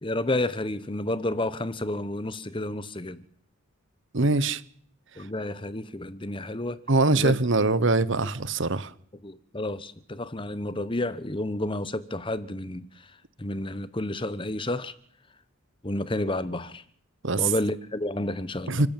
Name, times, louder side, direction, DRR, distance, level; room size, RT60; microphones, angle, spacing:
voice 1, 0.0-3.2 5.2-6.8 7.1-7.3 8.2-8.3 9.2-13.1 13.4-14.9 15.8-16.8 17.4-18.8, left 1 dB, 25° left, 1.0 m, -30 dB
voice 2, 4.1-4.6 6.9-8.9 17.2-17.5 18.7-18.9, right 3 dB, 55° right, 1.1 m, -23 dB
30.0 x 14.5 x 9.1 m
head